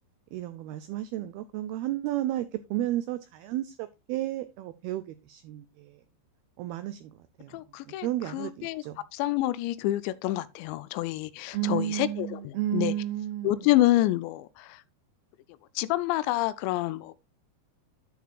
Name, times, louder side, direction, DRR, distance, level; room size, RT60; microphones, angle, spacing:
voice 1, 0.3-6.0 6.6-7.5 7.9-9.0 11.5-13.8, right 13 dB, 85° right, 2.2 m, -32 dB
voice 2, 7.5-8.1 8.3-8.8 9.1-12.4 12.7-12.9 13.4-14.8 15.8-17.1, left 16 dB, 85° left, 2.8 m, -27 dB
11.0 x 9.4 x 2.3 m
omnidirectional pair, 5.1 m